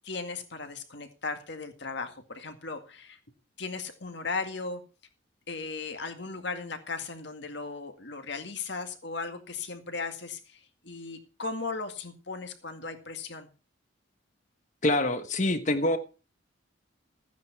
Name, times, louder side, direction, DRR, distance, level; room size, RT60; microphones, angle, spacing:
voice 1, 0.0-3.2 3.6-4.8 5.5-13.5, left 4 dB, 55° left, 7 dB, 2.0 m, -37 dB
voice 2, 14.8-16.0, left 1 dB, 35° left, 9 dB, 1.2 m, -25 dB
14.5 x 9.4 x 4.7 m, 0.34 s
head